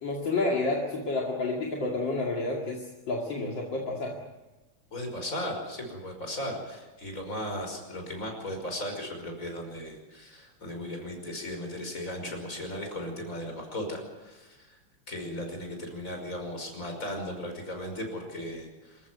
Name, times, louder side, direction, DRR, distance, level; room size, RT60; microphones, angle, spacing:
voice 1, 0.0-4.2, left 2 dB, 60° left, 0 dB, 3.1 m, -30 dB
voice 2, 4.9-14.5 15.1-19.0, left 1 dB, 35° left, 3 dB, 5.9 m, -36 dB
27.0 x 14.5 x 9.6 m, 1.1 s
omnidirectional pair, 2.4 m